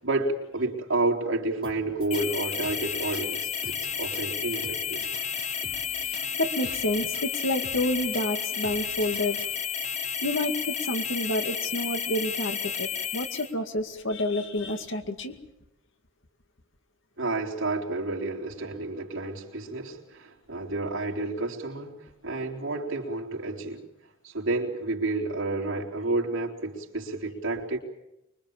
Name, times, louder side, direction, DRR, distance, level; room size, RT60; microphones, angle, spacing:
voice 1, 0.0-5.0 17.2-23.8 24.2-27.8, right 2 dB, 65° right, 3.9 m, -30 dB
sound 1, 1.6-10.0, right 2 dB, 25° right, 3.8 m, -48 dB
sound 2, 2.1-13.5, left 7 dB, 35° left, 1.5 m, -32 dB
voice 2, 5.9-9.4 10.0-15.4, left 1 dB, 65° left, 2.2 m, -29 dB
24.5 x 23.5 x 7.3 m
head